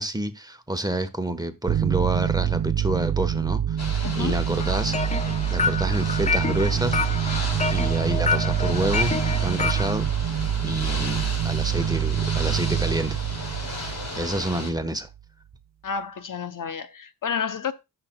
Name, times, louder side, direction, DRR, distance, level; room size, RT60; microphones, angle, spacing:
voice 1, 0.0-5.0 5.5-7.0 7.3-9.1 9.4-10.1 10.6-13.2 14.1-15.1, right 1 dB, 10° right, 1.2 m, -28 dB
sound 1, 1.7-14.8, right 10 dB, 45° right, 0.5 m, -26 dB
Ocean / Boat Water vehicle, 3.8-14.7, left 2 dB, 75° left, 5.1 m, -35 dB
voice 2, 4.0-4.4 15.8-17.7, left 6 dB, 55° left, 0.7 m, -30 dB
sound 2, 4.6-9.9, left 5 dB, 20° left, 0.4 m, -28 dB
14.5 x 6.0 x 2.3 m
cardioid pair, 55°, 38 cm